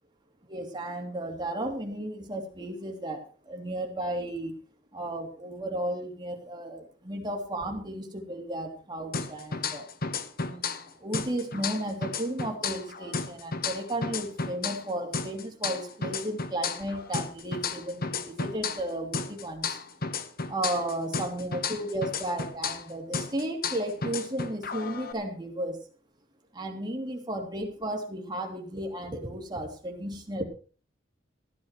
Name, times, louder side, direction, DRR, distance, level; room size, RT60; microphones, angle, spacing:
voice 1, 0.5-4.5 4.9-9.8 10.4-19.8 20.5-25.9 26.5-30.4, right 1 dB, 25° right, 1 dB, 3.1 m, -34 dB
sound 1, 9.1-10.9 11.1-14.9 15.1-18.9 19.1-22.9 23.1-25.1, left 4 dB, 55° left, 1.2 m, -33 dB
15.0 x 11.0 x 4.7 m, 0.39 s
head